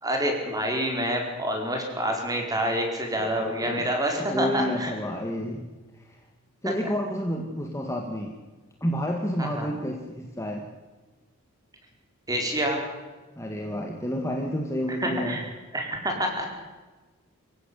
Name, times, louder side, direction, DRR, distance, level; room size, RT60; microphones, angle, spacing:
voice 1, 0.0-4.9 6.6-6.7 9.4-9.7 12.3-12.9 14.9-15.4 15.7-16.5, right 1 dB, 15° right, 2 dB, 5.0 m, -27 dB
voice 2, 3.2-3.9 4.2-5.7 6.1-6.2 6.6-8.3 8.8-10.7 13.4-15.4, equal, 15° left, 2 dB, 2.1 m, -30 dB
25.5 x 16.0 x 8.5 m, 1.3 s
head